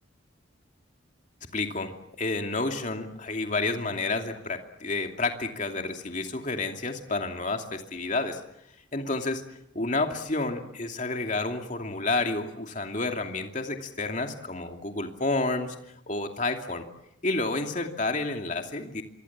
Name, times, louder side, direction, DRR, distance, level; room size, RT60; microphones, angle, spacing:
voice 1, 1.5-8.4 8.9-9.4 9.7-15.8 16.1-16.8 17.2-19.0, left 3 dB, 40° left, 4 dB, 2.7 m, -30 dB
26.0 x 24.5 x 7.4 m, 0.77 s
head